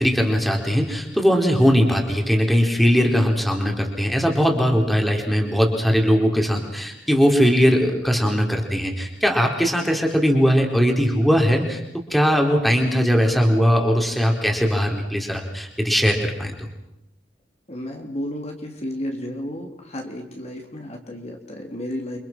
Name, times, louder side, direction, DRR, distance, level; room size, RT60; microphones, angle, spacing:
voice 1, 0.0-11.8 12.1-16.7, equal, ahead, 1 dB, 4.1 m, -20 dB
voice 2, 17.7-22.2, left 1 dB, 35° left, 2 dB, 3.5 m, -32 dB
30.0 x 26.0 x 6.2 m, 0.83 s
head